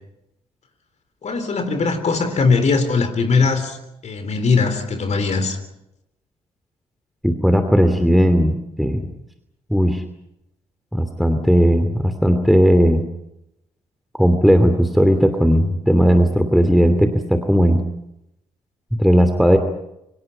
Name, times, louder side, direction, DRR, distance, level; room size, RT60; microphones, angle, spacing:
voice 1, 1.2-3.8 4.0-5.6, left 4 dB, 40° left, 8 dB, 3.7 m, -20 dB
voice 2, 7.2-9.1 9.7-10.0 10.9-13.1 14.2-17.8 19.0-19.6, equal, ahead, 7 dB, 2.8 m, -16 dB
29.0 x 25.0 x 5.7 m, 0.84 s
figure-of-eight pair, 45°, 17 cm